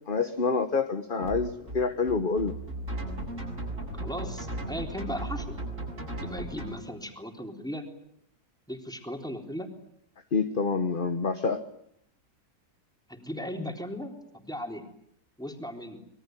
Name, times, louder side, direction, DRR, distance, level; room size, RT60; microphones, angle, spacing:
voice 1, 0.1-2.5 10.3-11.6, left 4 dB, 35° left, 8 dB, 1.4 m, -27 dB
sound 1, 1.2-6.7, right 1 dB, 50° right, 7.6 m, -36 dB
voice 2, 3.9-5.5 6.2-7.9 8.7-9.7 13.1-14.8 15.4-16.0, equal, ahead, 4 dB, 3.7 m, -37 dB
25.5 x 22.5 x 9.2 m, 0.71 s
omnidirectional pair, 1.7 m